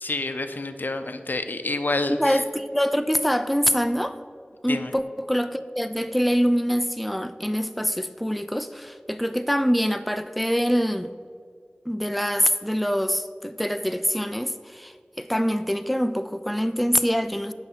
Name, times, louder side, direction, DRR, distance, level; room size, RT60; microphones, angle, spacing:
voice 1, 0.0-2.4 4.7-4.9, left 2 dB, 70° left, 8 dB, 0.5 m, -28 dB
voice 2, 2.1-4.2 4.6-11.1 11.9-17.5, equal, ahead, 10 dB, 0.4 m, -24 dB
9.3 x 5.9 x 4.1 m, 2.2 s
wide cardioid pair, 45°, 3 cm